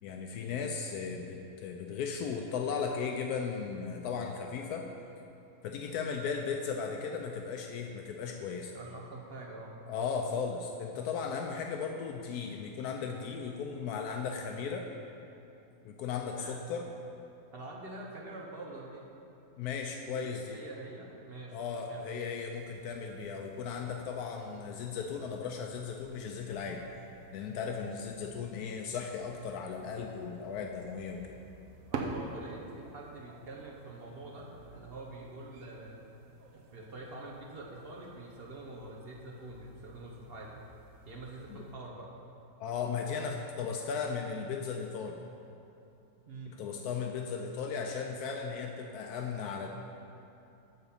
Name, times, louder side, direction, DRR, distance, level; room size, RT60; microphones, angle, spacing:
voice 1, 0.0-4.9 5.6-8.7 9.9-14.8 15.8-16.9 19.6-20.6 21.5-26.8 27.3-31.2 41.5-41.6 42.6-45.2 46.6-49.7, left 6 dB, 80° left, 2 dB, 1.1 m, -36 dB
voice 2, 8.7-9.8 16.4-16.6 17.5-19.1 19.8-21.6 21.9-22.0 31.9-36.0 36.5-40.6 41.0-42.1 46.2-46.6, right 2 dB, 45° right, -2 dB, 1.0 m, -46 dB
sound 1, 22.5-41.8, right 4 dB, 65° right, 1.0 m, -49 dB
9.6 x 4.0 x 7.0 m, 2.8 s
omnidirectional pair, 1.6 m